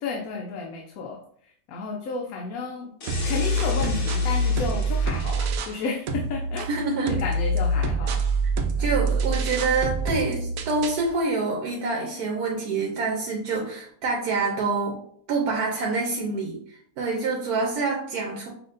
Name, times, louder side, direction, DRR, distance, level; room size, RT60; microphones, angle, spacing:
voice 1, 0.0-1.2 1.7-2.9 3.2-6.7 7.1-8.2 8.8-8.9, left 4 dB, 75° left, 1 dB, 1.0 m, -32 dB
sound 1, 3.0-5.5, left 2 dB, 55° left, 1.3 m, -37 dB
sound 2, 3.1-5.8 6.1-11.1, right 1 dB, 70° right, 0.9 m, -26 dB
voice 2, 6.7-7.2 8.4-8.5 8.8-15.0 15.3-18.5, right 3 dB, 90° right, -1 dB, 1.2 m, -26 dB
5.9 x 2.7 x 2.5 m, 0.64 s
omnidirectional pair, 1.6 m